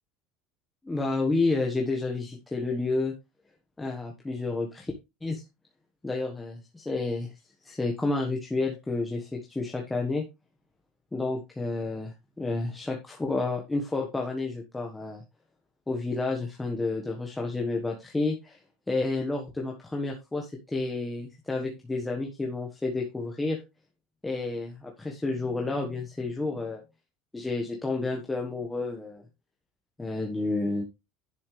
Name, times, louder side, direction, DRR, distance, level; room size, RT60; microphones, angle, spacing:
voice 1, 0.8-3.1 3.8-4.9 5.2-5.4 6.0-7.3 7.6-10.2 11.1-15.2 15.9-18.6 18.9-23.6 24.2-26.8 27.3-29.2 30.0-30.8, left 3 dB, 10° left, 1 dB, 1.4 m, -30 dB
10.5 x 7.1 x 3.3 m, 0.25 s
cardioid pair, 150°, 0 cm